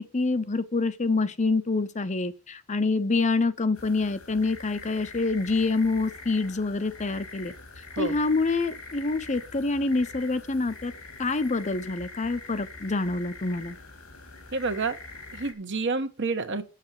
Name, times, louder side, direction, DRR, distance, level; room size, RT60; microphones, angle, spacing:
voice 1, 0.0-7.5 8.0-10.9 11.2-13.8, left 3 dB, 35° left, 0.8 m, -26 dB
sound 1, 3.7-15.5, left 3 dB, 85° left, 2.7 m, -44 dB
voice 2, 14.5-15.0 15.3-16.6, right 3 dB, 60° right, 1.3 m, -28 dB
7.5 x 7.4 x 7.6 m
head